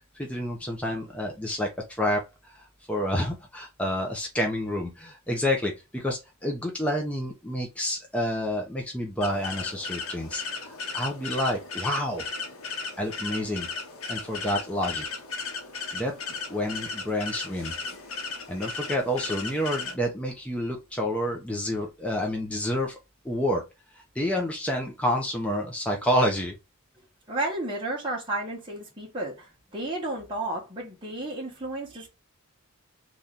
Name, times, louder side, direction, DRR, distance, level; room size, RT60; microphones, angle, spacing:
voice 1, 0.2-1.7 2.0-2.2 2.9-12.3 13.0-13.7 14.1-15.1 15.9-16.1 16.5-17.7 18.5-22.9 23.2-23.6 24.1-26.5, equal, 5° left, 0.7 m, -29 dB
sound 1, 9.2-20.0, left 4 dB, 70° left, 0.9 m, -36 dB
voice 2, 27.3-32.1, right 2 dB, 25° right, 1.1 m, -32 dB
3.1 x 2.8 x 3.7 m
head